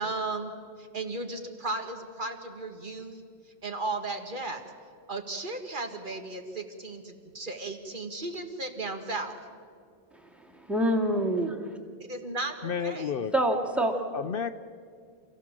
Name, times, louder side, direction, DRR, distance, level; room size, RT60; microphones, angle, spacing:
voice 1, 0.0-4.6 5.1-9.4 12.1-13.1, right 2 dB, 50° right, 5 dB, 2.0 m, -35 dB
voice 2, 10.1-11.8 13.3-14.0, right 1 dB, ahead, 4 dB, 2.1 m, -27 dB
voice 3, 12.6-13.3 14.1-14.5, left 7 dB, 60° left, 11 dB, 0.9 m, -31 dB
29.0 x 15.5 x 7.5 m, 2.2 s
omnidirectional pair, 1.1 m